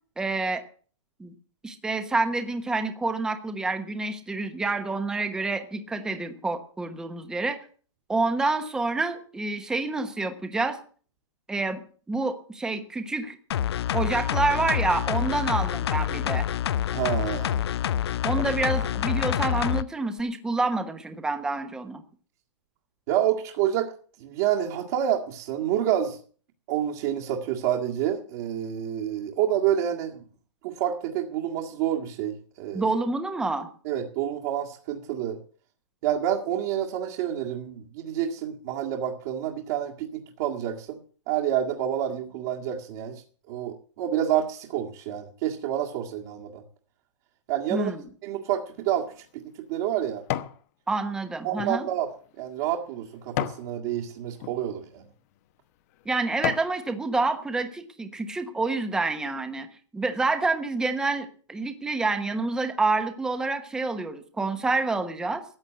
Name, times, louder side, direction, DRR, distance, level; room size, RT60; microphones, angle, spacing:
voice 1, 0.2-0.6 1.2-1.3 1.6-7.6 8.1-10.8 11.5-11.8 12.1-13.4 13.9-16.5 18.2-22.0 32.7-33.7 47.7-48.0 50.9-51.9 56.0-59.7 59.9-65.4, right 3 dB, 5° right, 8 dB, 1.1 m, -28 dB
sound 1, 13.5-19.8 20.2-20.3, left 10 dB, 60° left, 0.6 m, -27 dB
voice 2, 16.9-17.6 18.4-18.5 23.1-23.9 24.2-26.2 26.7-30.2 30.6-32.9 33.8-35.4 36.0-41.0 41.3-43.2 43.5-46.6 47.5-47.9 48.2-49.1 49.7-50.2 51.4-52.1 52.4-55.1, right 10 dB, 35° right, -1 dB, 2.0 m, -28 dB
Bowl Put Down On Table, 48.8-50.6 51.1-53.7 54.3-54.6 55.2-55.4 55.9-56.8 57.3-57.4, left 13 dB, 30° left, 1.0 m, -34 dB
14.5 x 8.8 x 7.8 m, 0.43 s
hypercardioid pair, 165°, 16 cm